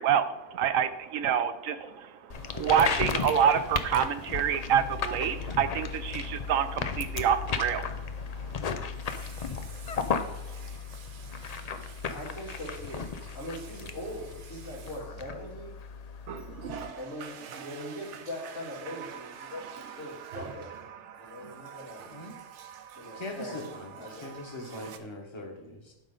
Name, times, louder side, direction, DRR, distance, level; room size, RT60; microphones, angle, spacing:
voice 1, 0.0-7.9 8.4-8.5, right 8 dB, 90° right, 11 dB, 1.1 m, -27 dB
sound 1, 2.3-16.9, left 6 dB, 55° left, 0.4 m, -35 dB
Water tap faucet, 5.3-5.4 8.8-15.7 16.2-25.0, right 8 dB, 65° right, 0.9 m, -46 dB
voice 2, 12.1-15.7 16.9-20.8 21.2-22.1 23.0-23.7 24.0-24.3, left 1 dB, 90° left, -7 dB, 3.9 m, -41 dB
voice 3, 23.1-25.9, left 2 dB, 20° left, 2 dB, 1.2 m, -41 dB
12.0 x 5.2 x 3.8 m, 0.95 s
omnidirectional pair, 1.3 m